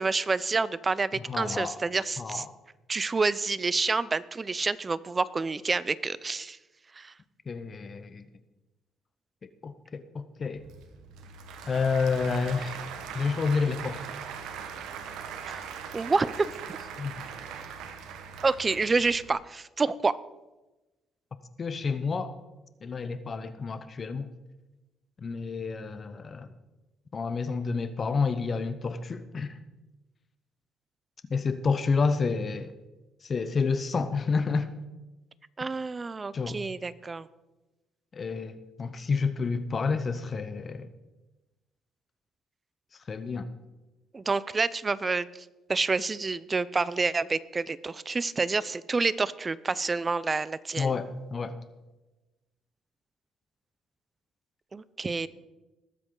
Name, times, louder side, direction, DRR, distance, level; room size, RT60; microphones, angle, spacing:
voice 1, 0.0-2.4 2.9-6.6 7.0-7.1 15.5-16.5 18.4-20.2 35.6-37.3 44.1-45.3 45.7-50.9 54.7-55.3, right 4 dB, 30° right, 18 dB, 0.5 m, -28 dB
voice 2, 1.3-1.8 2.2-2.5 7.5-8.2 9.4-10.6 11.7-12.8 13.1-14.2 17.0-17.2 21.6-22.3 22.8-24.3 25.2-26.5 27.1-29.6 31.3-32.7 33.2-34.7 36.3-36.6 38.1-40.9 43.1-43.5 50.8-51.6, left 4 dB, 40° left, 12 dB, 0.8 m, -29 dB
Applause / Crowd, 10.5-19.3, right 7 dB, 80° right, 1.2 m, -41 dB
sound 1, 11.8-14.4, left 1 dB, ahead, 2.6 m, -53 dB
20.0 x 7.9 x 3.8 m, 1.1 s
cardioid pair, 85°, 0 cm